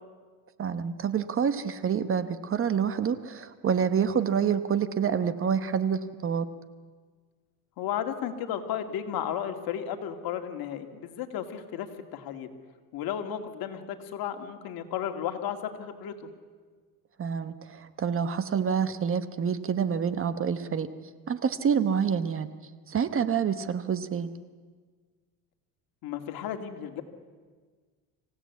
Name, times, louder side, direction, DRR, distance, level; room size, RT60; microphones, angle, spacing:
voice 1, 0.6-6.5 17.2-20.9 21.3-22.5 22.9-24.3, right 7 dB, 35° right, 13 dB, 1.0 m, -27 dB
voice 2, 7.8-12.5 12.9-16.1 26.0-27.0, left 9 dB, 60° left, 6 dB, 2.3 m, -34 dB
25.5 x 16.5 x 8.4 m, 1.5 s
cardioid pair, 120°, 40 cm